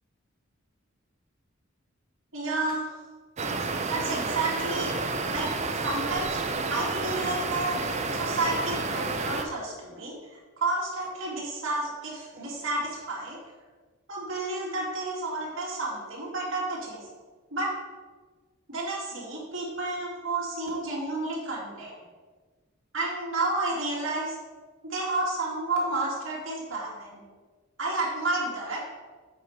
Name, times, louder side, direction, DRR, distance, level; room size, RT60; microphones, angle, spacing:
voice 1, 2.3-2.9 3.9-5.0 5.3-5.5 5.8-6.4 6.7-7.8 8.1-13.4 14.1-17.0 17.5-17.7 18.7-22.0 22.9-24.4 24.8-27.2 27.8-28.8, right 2 dB, 60° right, -5 dB, 2.4 m, -31 dB
sound 1, 3.4-9.4, right 3 dB, 30° right, 0.5 m, -30 dB
7.8 x 4.3 x 5.0 m, 1.4 s
head